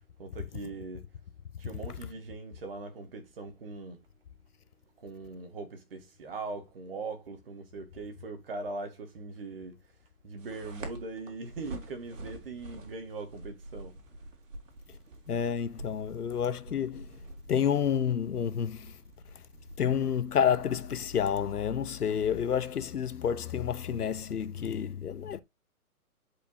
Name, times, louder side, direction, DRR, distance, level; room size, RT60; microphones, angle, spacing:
voice 1, 0.2-1.0 1.6-4.0 5.0-9.8 10.2-14.0, right 3 dB, 40° right, 1.7 m, -41 dB
sound 1, 10.4-23.9, right 2 dB, 55° right, 2.9 m, -48 dB
voice 2, 15.3-17.2 17.5-19.0 19.8-25.4, left 8 dB, 80° left, 1.1 m, -29 dB
10.5 x 5.0 x 2.7 m
hypercardioid pair, 165°, 45 cm